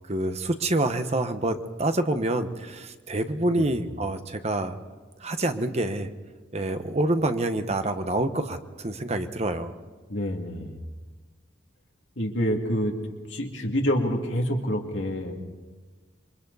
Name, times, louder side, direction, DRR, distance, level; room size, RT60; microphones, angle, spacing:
voice 1, 0.1-4.7 5.2-6.1 6.5-9.7, right 1 dB, 35° right, 8 dB, 1.1 m, -27 dB
voice 2, 10.1-10.8 12.2-13.0 13.3-15.4, equal, 70° left, 1 dB, 2.6 m, -27 dB
27.5 x 23.5 x 4.1 m, 1.3 s
head